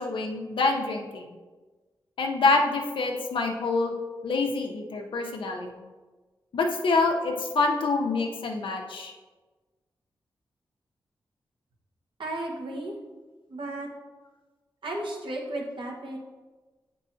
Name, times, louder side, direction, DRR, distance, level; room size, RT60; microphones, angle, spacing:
voice 1, 0.0-1.4 2.2-3.9 4.2-5.9 6.5-9.1, left 3 dB, 75° left, 2 dB, 0.8 m, -26 dB
voice 2, 12.2-12.9 13.5-13.9 14.8-16.2, right 1 dB, 70° right, -1 dB, 1.3 m, -34 dB
8.2 x 4.7 x 2.7 m, 1.3 s
cardioid pair, 50°, 9 cm